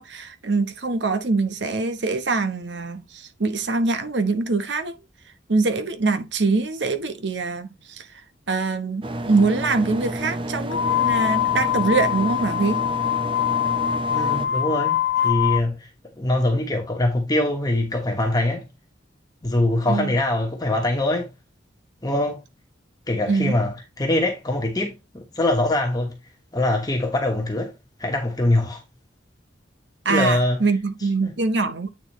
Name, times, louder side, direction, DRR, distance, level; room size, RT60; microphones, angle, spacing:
voice 1, 0.0-5.0 5.5-8.1 8.5-12.8 19.9-20.1 23.3-23.6 30.0-31.9, right 3 dB, 70° right, 1.0 m, -24 dB
sound 1, 9.0-14.5, right 1 dB, 25° right, 0.6 m, -30 dB
sound 2, 10.7-15.6, left 11 dB, 70° left, 0.8 m, -23 dB
voice 2, 14.1-15.9 16.2-18.7 19.4-21.3 22.0-22.4 23.1-26.2 26.5-27.7 28.0-28.8 30.1-31.4, left 1 dB, 20° left, 1.1 m, -23 dB
8.8 x 4.0 x 3.1 m
head